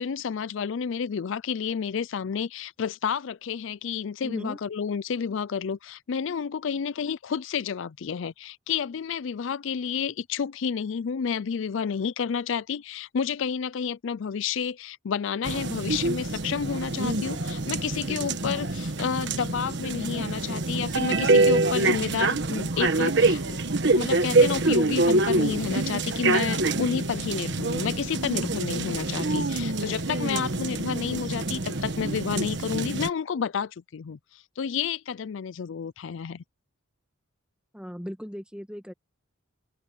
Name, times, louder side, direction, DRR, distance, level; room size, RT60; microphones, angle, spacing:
voice 1, 0.0-23.6 23.9-36.4, left 6 dB, 65° left, 0.4 m, -30 dB
voice 2, 4.2-4.6 37.7-38.9, equal, 5° right, 2.0 m, -37 dB
sound 1, 15.4-33.1, right 2 dB, 55° right, 1.3 m, -25 dB
open air
head